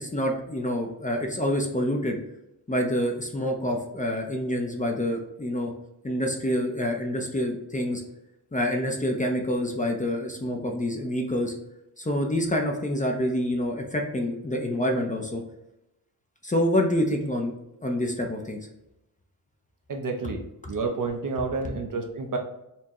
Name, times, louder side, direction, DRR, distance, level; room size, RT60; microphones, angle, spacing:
voice 1, 0.0-2.2 2.7-5.7 6.0-8.0 8.5-11.5 12.0-15.4 16.4-17.5 17.8-18.6, equal, 20° left, 2 dB, 0.6 m, -27 dB
voice 2, 19.9-20.4 20.7-22.4, right 4 dB, 55° right, 3 dB, 0.7 m, -29 dB
4.4 x 2.7 x 3.0 m, 0.88 s
wide cardioid pair, 110°, 39 cm